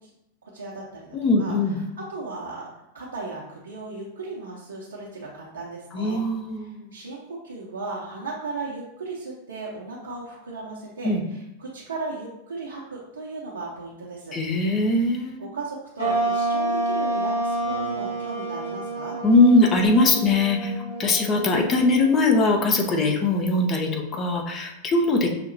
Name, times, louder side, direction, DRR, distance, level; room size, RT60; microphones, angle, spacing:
voice 1, 0.4-6.2 6.6-14.4 15.4-19.2, right 3 dB, 70° right, -6 dB, 0.7 m, -36 dB
voice 2, 1.1-1.8 5.9-6.9 11.0-11.2 14.3-15.5 19.2-25.3, left 2 dB, 30° left, 2 dB, 0.6 m, -21 dB
sound 1, 16.0-22.7, right 2 dB, 85° left, 1.5 m, -29 dB
5.8 x 2.7 x 2.7 m, 0.84 s
figure-of-eight pair, 90°, 0 cm